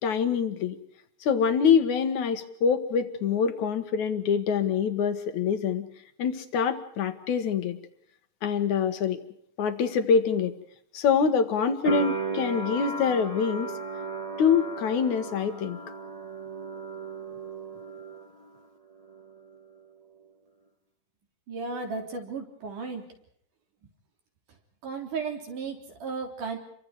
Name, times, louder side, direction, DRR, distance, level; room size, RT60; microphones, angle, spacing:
voice 1, 0.0-0.8 1.2-5.8 6.2-7.8 8.4-9.2 9.6-10.5 10.9-13.7 14.4-15.8, left 6 dB, 60° left, 8 dB, 2.6 m, -25 dB
sound 1, 11.8-18.7 18.9-19.8, right 3 dB, 15° right, 1.4 m, -35 dB
voice 2, 21.5-23.0 24.8-26.6, right 4 dB, 55° right, 3 dB, 4.9 m, -34 dB
29.5 x 24.0 x 4.9 m, 0.66 s
omnidirectional pair, 4.5 m